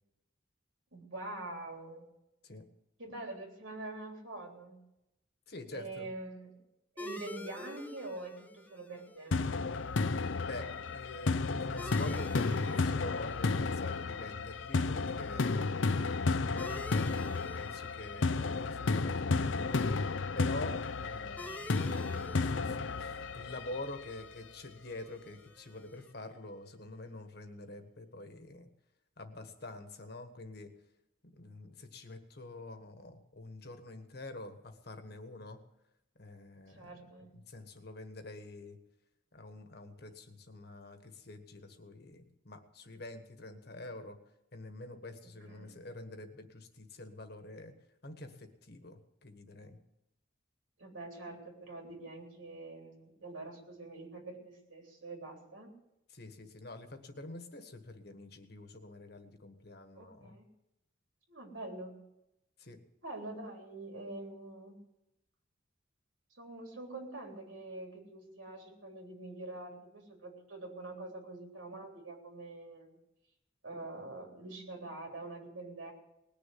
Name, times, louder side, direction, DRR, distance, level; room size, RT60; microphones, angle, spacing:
voice 1, 0.9-2.1 3.0-4.8 5.7-6.5 7.0-9.4 22.0-22.3 36.7-37.4 45.5-45.8 50.8-55.7 59.9-60.5 61.3-62.0 63.0-64.8 66.3-73.0 73.6-75.9, right 2 dB, 90° right, 1 dB, 3.5 m, -45 dB
voice 2, 5.5-6.1 10.3-15.7 16.3-19.9 20.3-22.0 22.3-28.7 29.2-30.7 31.3-35.6 36.2-37.0 37.3-38.8 39.3-44.2 44.5-47.7 48.0-49.8 56.1-60.4 62.6-62.8, left 2 dB, 55° left, 7 dB, 1.5 m, -46 dB
sound 1, 7.0-26.1, left 1 dB, 10° left, 0.7 m, -51 dB
sound 2, 9.3-24.3, left 3 dB, 80° left, 0.6 m, -32 dB
19.5 x 6.8 x 9.5 m, 0.89 s
head